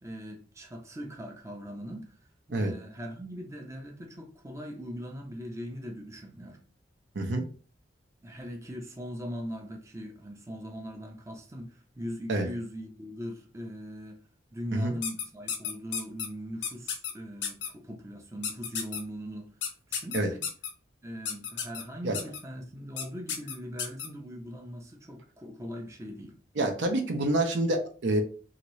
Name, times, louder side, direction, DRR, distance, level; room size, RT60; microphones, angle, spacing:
voice 1, 0.0-2.2 2.5-6.6 8.2-14.2 14.5-19.5 19.9-20.4 21.0-26.4, equal, 15° right, 0.5 m, -40 dB
sound 1, 15.0-16.3 16.6-17.1 17.4-17.7 18.4-19.0 19.6-20.7 21.2-21.8 22.1-22.4 23.0-23.1 23.3-24.1, left 7 dB, 80° left, 0.6 m, -32 dB
voice 2, 26.6-28.2, right 1 dB, 75° right, 0.6 m, -27 dB
2.8 x 2.6 x 3.1 m
head